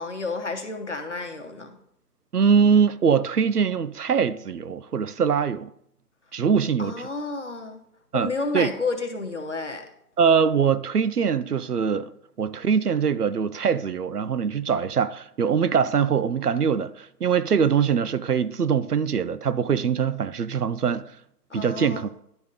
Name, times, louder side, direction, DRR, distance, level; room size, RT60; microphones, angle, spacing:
voice 1, 0.0-1.7 6.8-7.8 8.1-9.8 21.5-22.1, left 3 dB, 45° left, 1.1 m, -31 dB
voice 2, 2.3-5.7 6.3-7.1 8.1-8.7 10.2-12.1 12.4-21.1 21.5-22.1, right 6 dB, 70° right, 0.6 m, -23 dB
11.0 x 4.2 x 5.0 m
figure-of-eight pair, 175°, 49 cm